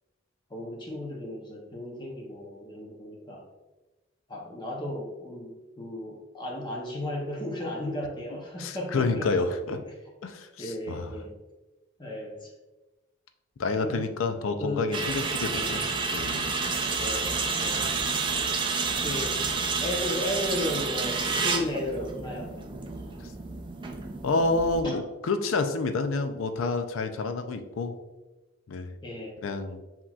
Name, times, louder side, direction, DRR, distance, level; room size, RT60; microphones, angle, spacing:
voice 1, 0.5-3.4 4.3-9.3 9.7-10.0 10.6-11.3 12.0-12.5 13.8-14.1 14.6-15.0 15.4-15.8 17.0-17.9 19.0-19.4 19.8-22.6 24.8-25.0 29.0-29.4, left 1 dB, 25° left, -1 dB, 0.7 m, -35 dB
voice 2, 8.6-9.8 10.2-11.1 13.6-15.8 16.1-16.4 24.2-27.9 28.7-28.9 29.4-29.8, left 3 dB, 80° left, 8 dB, 0.5 m, -28 dB
sound 1, 14.9-24.8, right 4 dB, 25° right, 0.4 m, -30 dB
7.4 x 2.9 x 2.3 m, 1.1 s
head